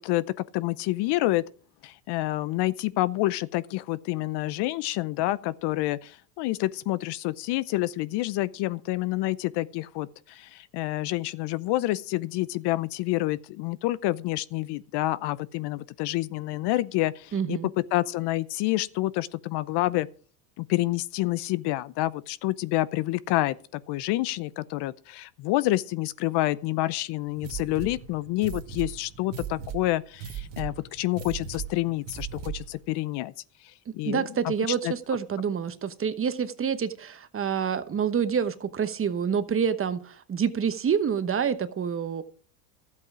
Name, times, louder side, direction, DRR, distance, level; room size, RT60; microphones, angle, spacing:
voice 1, 0.0-1.4 1.8-17.6 17.9-20.1 20.6-33.3 33.9-34.5 34.8-34.9, left 17 dB, 55° left, 0.7 m, -28 dB
voice 2, 17.3-17.7 34.0-42.2, right 7 dB, 25° right, 1.0 m, -27 dB
sound 1, 27.4-32.8, right 8 dB, 55° right, 2.2 m, -38 dB
12.5 x 8.3 x 4.8 m
supercardioid pair, 100°, 49 cm